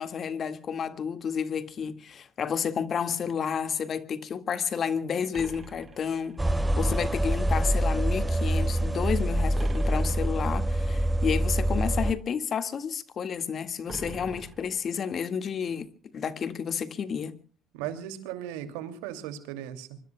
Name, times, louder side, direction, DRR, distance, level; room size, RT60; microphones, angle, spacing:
voice 1, 0.0-15.9 16.1-17.4, left 7 dB, 50° left, 1.9 m, -31 dB
sound 1, 5.3-6.7 9.5-10.7 13.9-15.2, right 3 dB, 30° right, 3.7 m, -43 dB
sound 2, 6.4-12.1, right 1 dB, 10° right, 1.3 m, -25 dB
voice 2, 17.7-20.0, right 11 dB, 85° right, 2.5 m, -37 dB
25.0 x 25.0 x 2.3 m
supercardioid pair, 65°, 0 cm